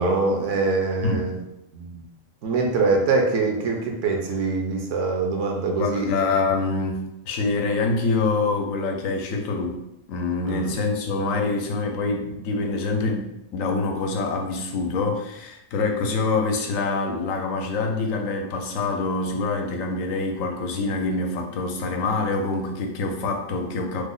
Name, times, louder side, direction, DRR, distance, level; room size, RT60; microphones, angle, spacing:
voice 1, 0.0-1.4 1.7-2.0 2.4-6.1 10.5-10.7, right 3 dB, 70° right, 1 dB, 0.9 m, -24 dB
voice 2, 5.7-9.8 10.1-24.0, left 3 dB, 75° left, 3 dB, 1.0 m, -25 dB
3.0 x 2.0 x 3.7 m, 0.83 s
omnidirectional pair, 1.4 m